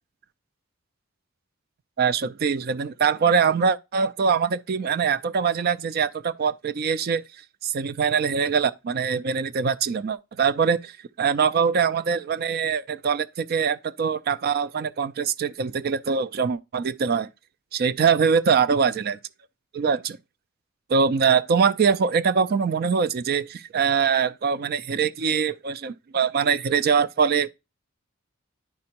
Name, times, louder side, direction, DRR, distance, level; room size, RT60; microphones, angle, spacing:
voice 1, 2.0-7.2 7.6-10.9 11.2-17.3 17.7-19.2 19.7-20.2 20.9-27.5, right 6 dB, 45° right, 0.3 m, -23 dB
10.5 x 4.3 x 2.9 m
head